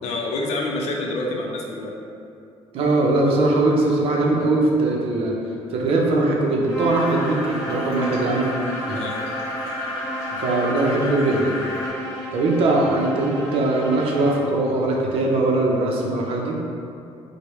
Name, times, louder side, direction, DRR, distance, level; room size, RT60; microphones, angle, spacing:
voice 1, 0.0-1.9 8.9-9.2, left 2 dB, 80° left, -1 dB, 0.5 m, -27 dB
voice 2, 2.7-5.3 5.7-8.4 8.9-9.0 10.4-11.5 12.3-16.6, right 2 dB, 60° right, -2 dB, 0.6 m, -21 dB
Bowed string instrument, 6.6-14.5, equal, 5° left, 0.8 m, -33 dB
sound 1, 6.9-11.9, left 1 dB, 30° left, 1.1 m, -32 dB
4.5 x 2.1 x 3.0 m, 2.5 s
cardioid pair, 165°, 11 cm